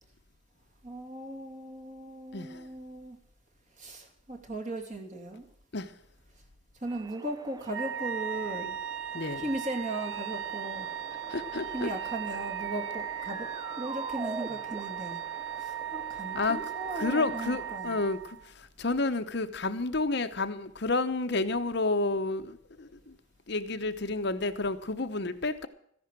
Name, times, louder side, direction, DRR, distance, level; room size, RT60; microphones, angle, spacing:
voice 1, 0.8-3.2 3.8-5.5 6.8-8.7 9.4-10.9 11.7-13.5 13.8-15.2 15.6-18.0, right 1 dB, 35° right, 3 dB, 2.5 m, -37 dB
voice 2, 2.3-2.7 5.7-5.9 9.1-9.4 11.3-11.9 16.3-16.6 17.0-23.2 23.5-25.7, left 3 dB, 50° left, 9 dB, 0.9 m, -30 dB
sound 1, 6.9-17.8, right 3 dB, 20° right, 0.6 m, -45 dB
Wind instrument woodwind instrument, 7.7-18.5, right 9 dB, 65° right, 0.7 m, -37 dB
14.5 x 10.5 x 7.5 m, 0.68 s
head